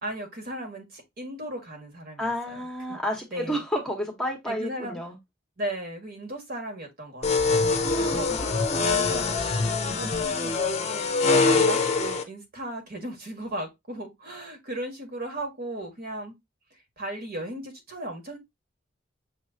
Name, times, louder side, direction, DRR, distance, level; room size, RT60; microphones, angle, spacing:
voice 1, 0.0-2.6 2.9-3.0 3.3-3.6 4.5-5.0 5.6-16.4 17.0-18.4, right 1 dB, 50° right, 1.6 m, -36 dB
voice 2, 2.2-5.2 7.8-9.0, equal, 5° left, 1.0 m, -31 dB
sound 1, 7.2-12.2, left 4 dB, 35° left, 0.7 m, -24 dB
6.5 x 3.1 x 2.7 m
head